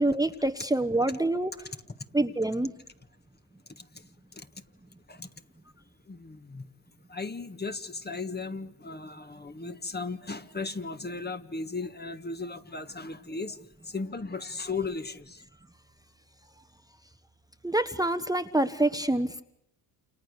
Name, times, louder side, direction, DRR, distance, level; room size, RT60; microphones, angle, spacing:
voice 1, 0.0-1.5 2.1-2.7 17.6-19.4, right 1 dB, 10° right, 8 dB, 1.3 m, -26 dB
voice 2, 6.1-6.7 7.1-13.6 13.8-15.4, left 4 dB, 20° left, 9 dB, 1.7 m, -36 dB
29.0 x 28.5 x 6.7 m, 0.79 s
supercardioid pair, 65°, 47 cm